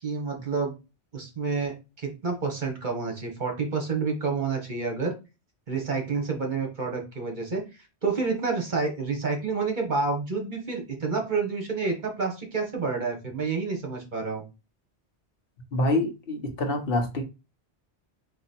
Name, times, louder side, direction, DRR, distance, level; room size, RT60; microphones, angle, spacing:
voice 1, 0.0-0.7 1.1-5.1 5.7-7.6 8.0-14.4, right 4 dB, 45° right, 1.3 m, -29 dB
voice 2, 15.7-17.2, left 1 dB, 60° left, 1.1 m, -26 dB
4.1 x 2.8 x 4.1 m
omnidirectional pair, 1.1 m